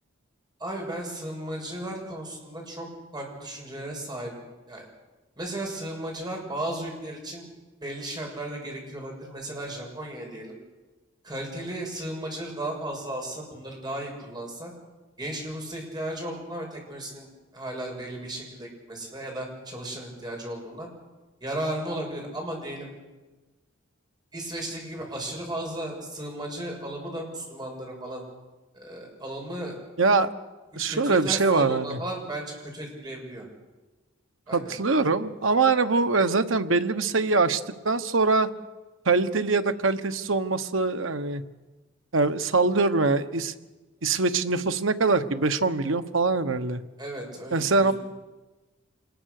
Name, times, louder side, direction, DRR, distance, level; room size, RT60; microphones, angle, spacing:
voice 1, 0.6-2.9 3.1-4.9 5.4-7.5 7.8-10.6 11.2-14.7 15.2-17.3 17.5-20.9 21.4-22.9 24.3-28.2 28.7-29.8 30.8-33.5 34.5-34.7 47.0-47.9, right 1 dB, 20° right, 0 dB, 6.6 m, -35 dB
voice 2, 30.0-30.3 30.8-32.0 34.5-38.5 39.0-41.4 42.1-43.5 44.0-46.8 47.5-47.9, right 3 dB, 75° right, 9 dB, 1.2 m, -23 dB
26.5 x 20.5 x 6.7 m, 1.2 s
head